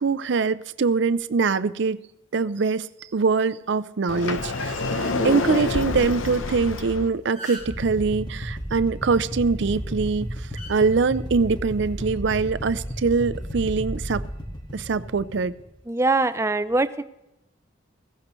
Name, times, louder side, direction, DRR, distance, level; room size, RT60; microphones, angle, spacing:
voice 1, 0.0-2.0 2.3-2.9 3.1-10.3 10.7-14.2 14.7-15.5, right 4 dB, 65° right, 14 dB, 0.5 m, -23 dB
Sliding door, 4.1-7.1, left 3 dB, 90° left, 0.8 m, -27 dB
sound 1, 7.2-7.8 9.5-9.7 10.6-10.7 11.8-12.0, right 1 dB, 40° left, 3.5 m, -39 dB
sound 2, 7.6-15.8, equal, 25° left, 1.7 m, -33 dB
voice 2, 15.9-17.0, right 2 dB, 15° right, 12 dB, 0.5 m, -23 dB
16.0 x 15.0 x 3.1 m, 0.92 s
head